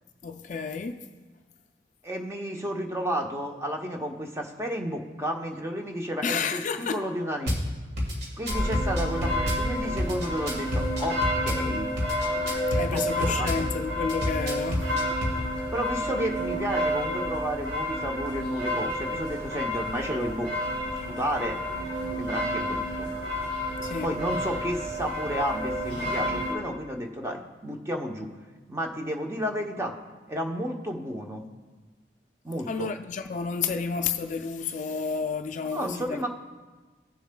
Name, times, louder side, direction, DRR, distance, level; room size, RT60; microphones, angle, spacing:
voice 1, 0.2-1.1 6.2-7.0 12.8-14.9 23.8-24.1 32.7-36.3, left 5 dB, 45° left, 0.4 m, -31 dB
voice 2, 2.0-7.5 8.4-11.9 12.9-13.0 13.3-13.6 15.7-20.7 21.0-21.6 22.2-23.1 24.0-28.3 28.7-29.9 30.3-31.5 32.4-32.9 35.7-36.3, equal, 15° right, 0.7 m, -32 dB
Drum kit / Bass drum, 7.5-7.6 8.0-9.6 10.0-11.6 12.0-13.6 14.1-15.4, left 1 dB, 65° right, 2.0 m, -29 dB
sound 1, 8.5-26.5, equal, 85° right, 2.7 m, -30 dB
16.5 x 6.9 x 2.2 m
head